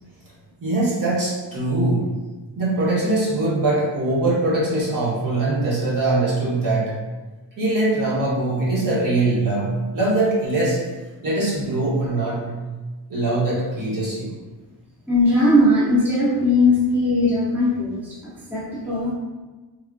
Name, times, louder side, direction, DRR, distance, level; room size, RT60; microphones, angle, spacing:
voice 1, 0.6-2.1 2.6-7.0 7.6-10.8 11.2-12.5 13.1-14.3, right 2 dB, 50° right, -6 dB, 1.0 m, -22 dB
voice 2, 15.1-18.1 18.5-19.1, left 1 dB, 5° right, -7 dB, 0.5 m, -19 dB
3.5 x 2.4 x 2.4 m, 1.2 s
wide cardioid pair, 170°, 42 cm